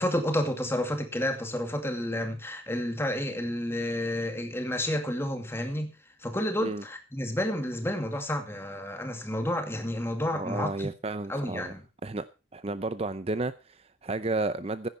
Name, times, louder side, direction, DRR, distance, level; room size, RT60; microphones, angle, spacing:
voice 1, 0.0-5.9 6.2-10.9 11.3-11.8, left 1 dB, 10° left, 2.3 m, -30 dB
voice 2, 10.3-11.7 12.0-12.2 12.5-14.9, right 2 dB, 30° right, 0.6 m, -32 dB
15.5 x 10.0 x 4.4 m
head